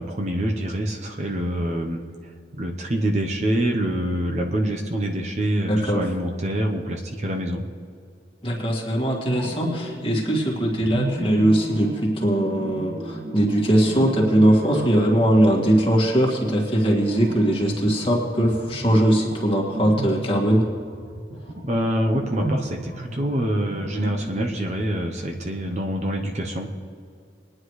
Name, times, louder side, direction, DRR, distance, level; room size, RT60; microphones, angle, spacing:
voice 1, 0.0-2.0 2.5-7.6 21.6-26.7, right 1 dB, 40° right, 3 dB, 0.8 m, -25 dB
voice 2, 5.7-6.0 8.4-20.7, right 1 dB, 30° left, -2 dB, 2.0 m, -20 dB
sound 1, 9.0-10.4 10.7-24.6, right 1 dB, 70° right, 2.0 m, -34 dB
22.0 x 9.8 x 3.2 m, 2.2 s
head